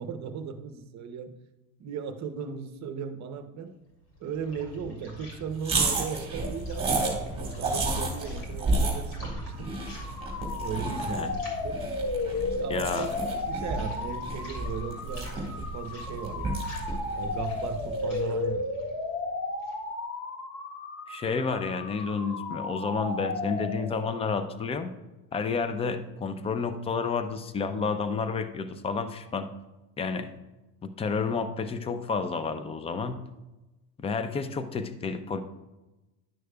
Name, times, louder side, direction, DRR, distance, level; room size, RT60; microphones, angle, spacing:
voice 1, 0.0-1.3 1.8-3.7 4.2-7.0 7.4-9.7 10.6-11.8 12.6-13.1 13.5-16.6 17.1-18.7, right 7 dB, 40° right, 8 dB, 0.8 m, -37 dB
sound 1, 3.9-19.9, equal, 75° left, 2.7 m, -46 dB
sound 2, 5.6-18.1, right 2 dB, 15° right, 1.9 m, -32 dB
sound 3, 9.6-24.3, left 3 dB, 45° left, 1.2 m, -34 dB
voice 2, 11.0-11.3 12.7-13.1 21.1-24.9 25.3-29.5 30.0-30.3 30.8-33.2 34.0-35.4, left 5 dB, 15° left, 10 dB, 0.4 m, -30 dB
10.5 x 6.3 x 2.3 m, 1.0 s
supercardioid pair, 110°, 44 cm